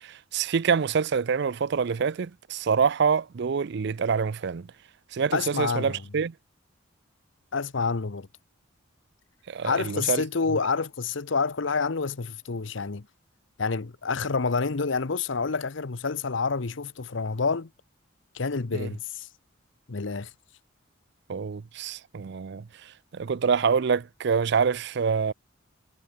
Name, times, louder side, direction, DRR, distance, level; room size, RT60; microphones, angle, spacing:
voice 1, 0.0-4.7 5.1-6.3 9.5-10.2 18.7-18.9 21.3-22.6 23.1-25.3, right 6 dB, 60° right, 0.5 m, -26 dB
voice 2, 5.3-6.0 7.5-8.3 9.6-13.1 13.6-17.7 18.3-19.3 19.9-20.3, left 4 dB, 70° left, 0.9 m, -28 dB
head